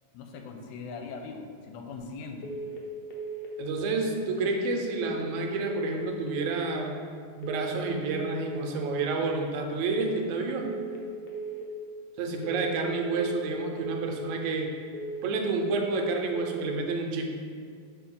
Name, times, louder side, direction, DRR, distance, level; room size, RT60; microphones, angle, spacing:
voice 1, 0.1-2.5, left 4 dB, 85° left, 4 dB, 2.0 m, -40 dB
sound 1, 2.4-2.8 3.1-3.5 3.8-4.2 4.9-5.3 5.6-6.0 6.3-6.7 7.4-7.8 8.1-8.5 8.8-9.2 9.9-10.3 10.6-11.0 11.3-11.7 12.4-12.8 13.1-13.5 13.8-14.2 14.9-15.3 15.6-16.0 16.3-16.7, right 4 dB, 70° left, 1.6 m, -37 dB
voice 2, 3.6-6.9 7.4-10.7 12.2-14.7 15.2-17.3, right 3 dB, 85° right, 2 dB, 2.1 m, -29 dB
6.8 x 4.3 x 3.7 m, 2.1 s
omnidirectional pair, 3.3 m